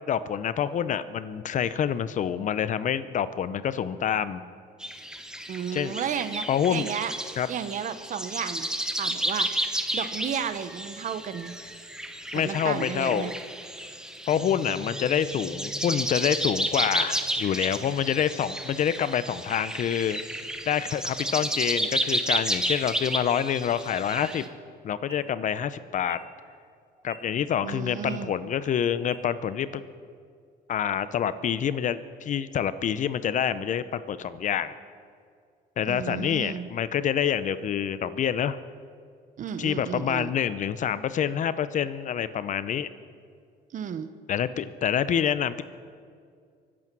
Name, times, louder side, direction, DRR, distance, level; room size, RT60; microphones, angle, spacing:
voice 1, 0.1-4.4 5.7-6.0 6.5-6.9 7.4-7.5 12.3-13.3 14.3-20.2 20.7-24.4 24.8-26.2 27.0-29.8 30.7-34.7 35.8-38.6 39.6-42.9 44.3-45.6, left 9 dB, 50° left, 15 dB, 0.6 m, -27 dB
sound 1, 4.8-24.5, right 1 dB, 5° right, 1.1 m, -32 dB
voice 2, 5.5-7.1 7.5-9.5 9.9-11.5 12.4-13.3 27.6-28.3 35.9-36.7 39.4-40.3 43.7-44.1, right 8 dB, 50° right, 12 dB, 1.0 m, -33 dB
Bass guitar, 14.3-18.7 19.4-20.5, equal, 10° left, 5.4 m, -46 dB
sound 2, 24.1-24.2 25.0-25.2 26.0-26.2 27.0-27.2 28.0-28.2 29.0-29.2, right 3 dB, 25° right, 2.1 m, -46 dB
24.5 x 8.6 x 6.1 m, 2.2 s
cardioid pair, 110°, 17 cm